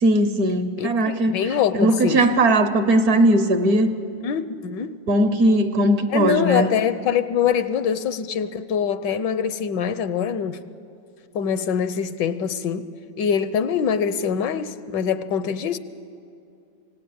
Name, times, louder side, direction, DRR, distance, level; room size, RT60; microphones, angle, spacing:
voice 1, 0.0-1.3 1.8-3.9 5.1-6.7, right 1 dB, 55° right, 10 dB, 1.3 m, -18 dB
voice 2, 1.3-2.3 4.2-5.0 6.1-10.6 11.3-12.9 13.2-15.8, left 7 dB, 75° left, 13 dB, 1.3 m, -24 dB
27.0 x 17.5 x 8.6 m, 2.5 s
omnidirectional pair, 2.1 m